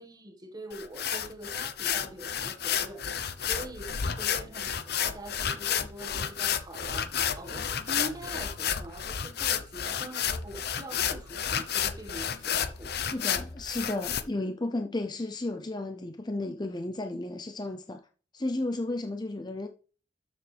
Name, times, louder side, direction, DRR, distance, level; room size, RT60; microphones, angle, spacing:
voice 1, 0.0-12.9, right 1 dB, 20° right, 1.7 m, -44 dB
sound 1, 0.7-14.2, left 8 dB, 55° left, 0.8 m, -31 dB
voice 2, 13.1-18.0 18.3-19.7, left 2 dB, 20° left, 0.6 m, -33 dB
13.0 x 6.9 x 3.4 m
head